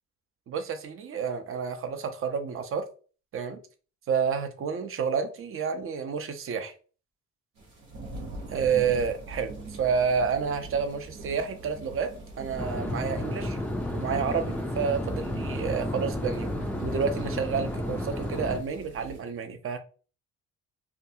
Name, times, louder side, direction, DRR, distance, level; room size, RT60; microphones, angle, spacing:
voice 1, 0.5-2.8 3.3-3.6 4.1-6.7 8.5-9.5 9.8-12.1 12.4-13.6 13.9-16.5 16.8-19.8, right 6 dB, 45° right, 8 dB, 0.5 m, -29 dB
sound 1, 7.6-19.2, right 2 dB, 85° right, 1.0 m, -43 dB
sound 2, 12.6-18.6, left 1 dB, 5° left, 0.3 m, -32 dB
2.6 x 2.3 x 2.6 m, 0.38 s
cardioid pair, 90°, 30 cm